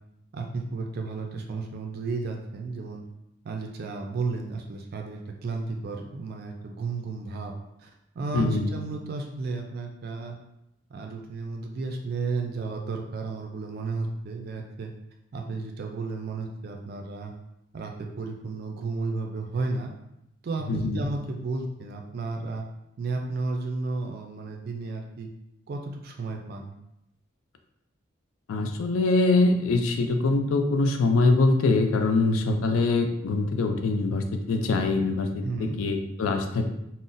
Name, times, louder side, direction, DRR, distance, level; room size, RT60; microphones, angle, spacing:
voice 1, 0.3-3.0 3.4-7.5 7.8-7.9 8.2-10.4 10.9-14.9 15.3-17.3 17.7-19.9 20.4-22.6 23.0-25.3 25.7-26.7 35.4-35.8, right 3 dB, 50° right, 3 dB, 0.3 m, -33 dB
voice 2, 8.3-8.7 20.7-21.1 28.5-36.7, left 3 dB, 85° left, 6 dB, 0.4 m, -23 dB
3.8 x 2.0 x 2.5 m, 0.83 s
head